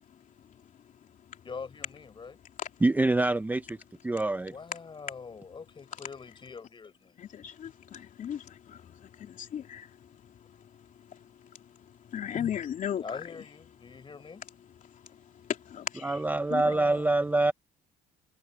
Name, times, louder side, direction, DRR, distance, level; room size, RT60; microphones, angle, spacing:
voice 1, 0.4-1.4 2.6-2.7 7.2-13.3 13.9-14.0 14.8-16.2 16.5-16.7, left 9 dB, 50° left, 3.0 m, -38 dB
voice 2, 1.4-2.4 4.5-7.1 13.0-14.4 16.5-17.1, left 5 dB, 30° left, 5.8 m, -44 dB
voice 3, 2.8-4.6 16.0-17.5, right 2 dB, 10° right, 0.7 m, -26 dB
cardioid pair, 110°, 17 cm